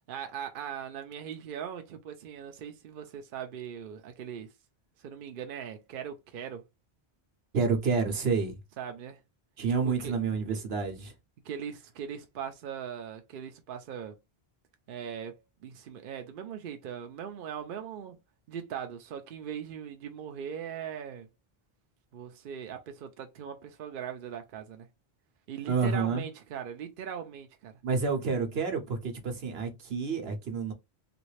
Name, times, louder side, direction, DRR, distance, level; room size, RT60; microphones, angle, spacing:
voice 1, 0.1-4.5 5.0-6.6 8.8-9.2 9.8-10.2 11.4-14.2 14.9-18.2 18.5-21.3 22.1-24.9 25.5-27.7, right 8 dB, 65° right, 0.7 m, -40 dB
voice 2, 7.5-8.6 9.6-11.1 25.7-26.2 27.8-30.7, right 5 dB, 80° right, 1.1 m, -29 dB
3.1 x 2.6 x 3.2 m
omnidirectional pair, 1.0 m